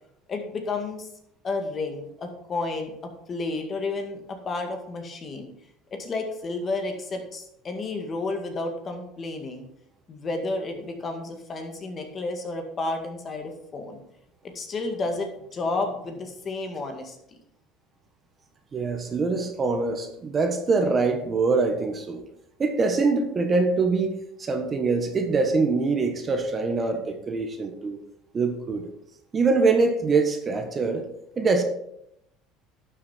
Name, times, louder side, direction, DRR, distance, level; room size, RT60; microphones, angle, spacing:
voice 1, 0.3-1.1 1.4-2.9 3.3-5.5 6.0-9.7 10.1-14.0 14.4-17.4, left 3 dB, 30° left, 4 dB, 2.0 m, -31 dB
voice 2, 18.7-22.2 22.6-28.0 28.3-28.9 29.3-31.0 31.4-31.6, right 4 dB, 25° right, 6 dB, 1.3 m, -24 dB
11.5 x 6.6 x 4.4 m, 0.77 s
supercardioid pair, 120°, 0 cm